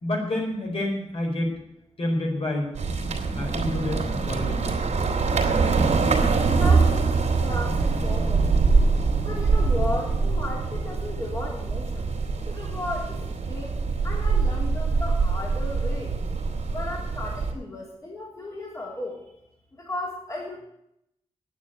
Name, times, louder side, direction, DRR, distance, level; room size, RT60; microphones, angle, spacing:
voice 1, 0.0-1.5 2.0-2.7 3.3-4.7, left 1 dB, 55° left, 0 dB, 4.5 m, -28 dB
sound 1, 2.7-17.5, right 4 dB, 80° right, 2.7 m, -24 dB
voice 2, 6.6-7.0 7.4-8.5 9.2-12.0 12.5-13.2 13.5-13.7 14.0-16.1 16.7-19.2 19.9-20.6, left 2 dB, 30° left, -4 dB, 3.0 m, -34 dB
9.4 x 9.3 x 9.2 m, 0.80 s
wide cardioid pair, 100°, 12 cm